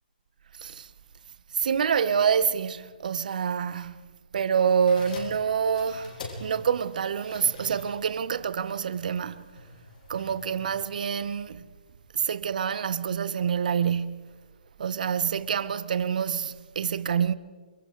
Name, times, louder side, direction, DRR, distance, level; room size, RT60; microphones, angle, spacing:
voice 1, 1.5-4.0 4.3-9.4 10.1-11.6 12.1-14.4 14.8-17.3, right 7 dB, 60° right, 1.0 m, -27 dB
sound 1, 4.7-11.5, left 2 dB, 60° left, 7.6 m, -46 dB
29.0 x 23.0 x 4.0 m
figure-of-eight pair, 140°, 5 cm